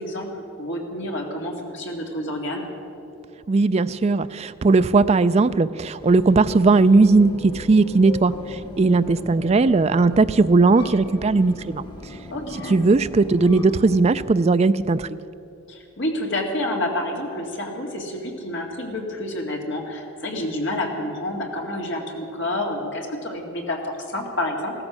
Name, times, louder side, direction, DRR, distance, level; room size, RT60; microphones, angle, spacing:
voice 1, 0.0-2.7 12.3-12.8 15.7-24.7, left 1 dB, 55° left, 1 dB, 2.1 m, -29 dB
voice 2, 3.5-11.8 12.7-15.2, right 3 dB, 30° right, 13 dB, 0.3 m, -18 dB
sound 1, 6.0-14.0, left 2 dB, 20° left, 1.1 m, -38 dB
15.5 x 14.0 x 6.2 m, 2.7 s
head